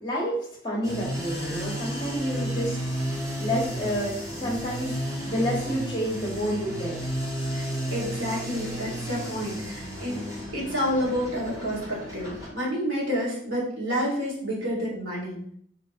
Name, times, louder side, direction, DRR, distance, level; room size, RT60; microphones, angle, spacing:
voice 1, 0.0-2.8 3.4-5.0 5.2-6.9, equal, 25° left, -5 dB, 1.0 m, -29 dB
sound 1, 0.8-12.5, equal, 15° right, 1.2 m, -33 dB
voice 2, 7.5-10.2 10.5-15.4, equal, 90° right, -7 dB, 2.0 m, -29 dB
4.2 x 3.0 x 4.1 m, 0.65 s
head